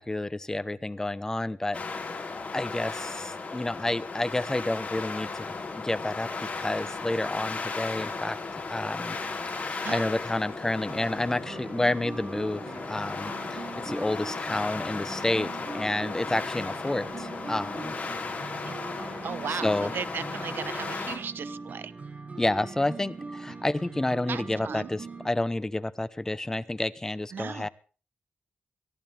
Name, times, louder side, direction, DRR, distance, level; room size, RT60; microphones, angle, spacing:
voice 1, 0.0-1.8 2.5-8.4 8.7-9.2 9.6-17.9 19.5-19.9 22.4-27.7, left 2 dB, 15° left, 14 dB, 0.9 m, -30 dB
sound 1, 1.7-21.2, left 4 dB, 40° left, 4.5 m, -36 dB
sound 2, 10.9-25.3, right 4 dB, 45° right, 2.9 m, -41 dB
voice 2, 19.2-21.9 24.3-24.9 27.3-27.7, right 7 dB, 75° right, 17 dB, 0.9 m, -36 dB
23.0 x 14.5 x 3.5 m, 0.38 s
wide cardioid pair, 115°, 4 cm